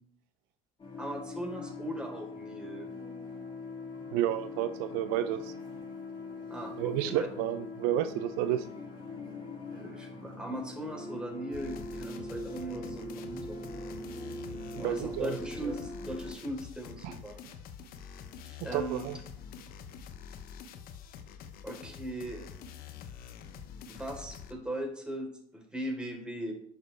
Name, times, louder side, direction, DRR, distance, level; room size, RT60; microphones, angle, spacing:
sound 1, 0.8-16.3, left 2 dB, 30° left, 3.9 m, -42 dB
voice 1, 1.0-2.9 6.5-7.3 9.7-13.6 14.8-17.4 18.4-19.1 21.6-22.5 23.9-26.5, right 1 dB, 5° right, 0 dB, 3.9 m, -39 dB
voice 2, 4.1-5.5 6.8-8.7 14.8-15.4 17.0-17.1 18.6-19.2, right 12 dB, 75° right, 11 dB, 0.6 m, -31 dB
sound 2, 11.5-24.5, left 7 dB, 60° left, 1.0 m, -46 dB
11.0 x 6.6 x 3.4 m, 0.66 s
hypercardioid pair, 70°, 17 cm